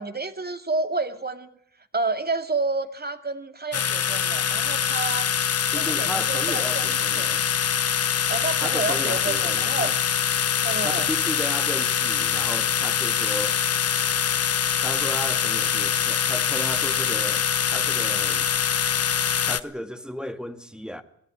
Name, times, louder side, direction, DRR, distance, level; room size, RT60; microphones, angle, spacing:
voice 1, 0.0-1.5 1.9-5.3 5.7-7.3 8.3-9.9 10.6-11.1, right 3 dB, 30° right, 2.5 m, -29 dB
sound 1, 3.7-19.6, left 8 dB, 55° left, 0.9 m, -24 dB
voice 2, 5.7-7.4 8.6-10.0 10.8-13.6 14.8-18.5 19.4-21.0, equal, 5° right, 2.0 m, -34 dB
21.5 x 14.5 x 9.7 m
supercardioid pair, 45°, 30 cm